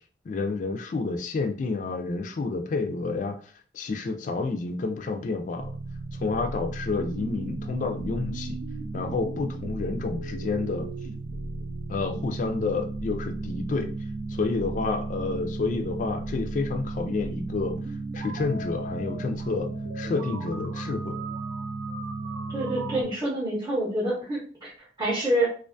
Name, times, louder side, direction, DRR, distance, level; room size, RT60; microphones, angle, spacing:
voice 1, 0.2-5.7 6.1-8.6 8.9-10.9 11.9-13.9 14.3-17.7 18.1-19.7 19.9-21.2, left 3 dB, 40° left, 5 dB, 0.3 m, -29 dB
sound 1, 5.6-23.0, right 3 dB, 65° right, 0.5 m, -34 dB
voice 2, 22.5-25.5, right 1 dB, 20° right, -5 dB, 0.7 m, -27 dB
2.4 x 2.2 x 2.5 m, 0.42 s
head